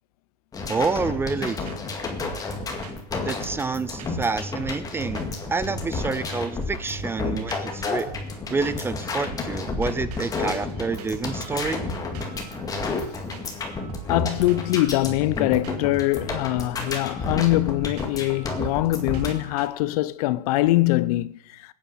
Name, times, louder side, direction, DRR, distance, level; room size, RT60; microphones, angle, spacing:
sound 1, 0.5-19.3, left 3 dB, 15° left, 2.0 m, -31 dB
voice 1, 0.7-1.7 3.2-8.1 8.5-11.8, right 4 dB, 10° right, 0.5 m, -28 dB
sound 2, 1.1-1.4 1.7-2.0 2.2-4.3 4.6-6.1 6.3-6.6 6.9-9.0 9.2-19.7, right 9 dB, 70° right, 1.6 m, -43 dB
voice 2, 14.1-21.4, left 17 dB, 65° left, 0.7 m, -23 dB
20.0 x 9.1 x 5.7 m
supercardioid pair, 145°, 21 cm